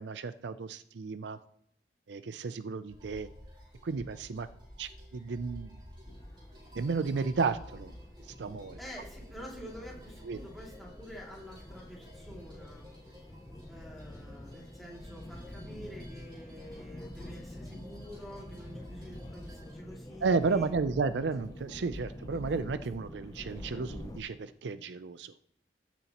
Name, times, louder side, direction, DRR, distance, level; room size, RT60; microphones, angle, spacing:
voice 1, 0.0-1.4 2.1-3.3 3.8-4.5 4.8-5.8 6.8-8.0 8.3-8.8 10.2-10.4 20.2-25.3, right 4 dB, 85° right, 13 dB, 0.5 m, -33 dB
sound 1, 2.9-19.8, equal, 25° right, 3.1 m, -53 dB
sound 2, 6.0-24.2, left 1 dB, 20° left, 0.6 m, -47 dB
voice 2, 8.8-12.9 13.7-20.7, equal, ahead, -4 dB, 2.5 m, -48 dB
14.5 x 7.0 x 3.0 m, 0.70 s
head